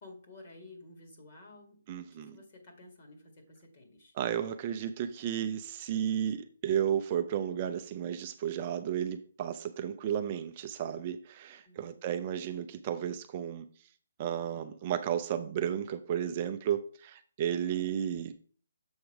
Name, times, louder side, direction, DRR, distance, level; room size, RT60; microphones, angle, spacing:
voice 1, 0.0-1.8 2.1-4.1 11.6-12.2, left 2 dB, 35° left, 1.9 m, -53 dB
voice 2, 1.9-2.4 4.2-13.7 14.2-18.3, right 9 dB, 25° right, 0.5 m, -33 dB
7.2 x 5.0 x 4.7 m
hypercardioid pair, 170°, 0 cm